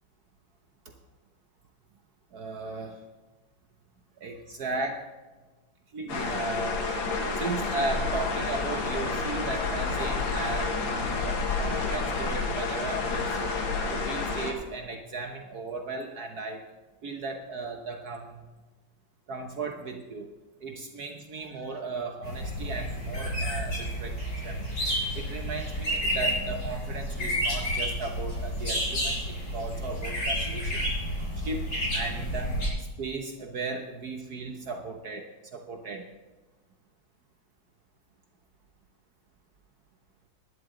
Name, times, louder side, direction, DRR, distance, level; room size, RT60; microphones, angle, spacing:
voice 1, 2.3-3.0 4.2-5.1 5.9-6.9 7.3-10.7 11.0-13.5 13.9-16.6 17.0-18.5 19.3-20.3 20.6-24.6 25.1-30.9 31.3-36.1, right 3 dB, 55° right, 4 dB, 1.4 m, -36 dB
sound 1, 6.1-14.5, left 3 dB, 75° left, 2.3 m, -29 dB
sound 2, 22.2-32.7, equal, 50° left, 6.3 m, -30 dB
19.0 x 11.0 x 3.8 m, 1.2 s
omnidirectional pair, 2.2 m